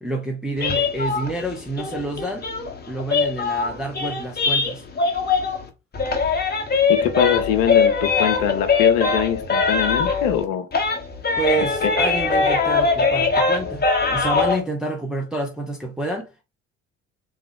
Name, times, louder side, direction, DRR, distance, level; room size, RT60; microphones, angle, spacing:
voice 1, 0.0-2.5 2.9-4.8 11.4-16.4, right 2 dB, ahead, 0.9 m, -28 dB
sound 1, 0.6-5.7 5.9-10.4 10.7-14.6, left 4 dB, 25° left, 1.2 m, -21 dB
voice 2, 6.9-10.7 11.8-11.9, left 9 dB, 65° left, 0.9 m, -23 dB
3.5 x 3.4 x 3.5 m
figure-of-eight pair, 55°, 37 cm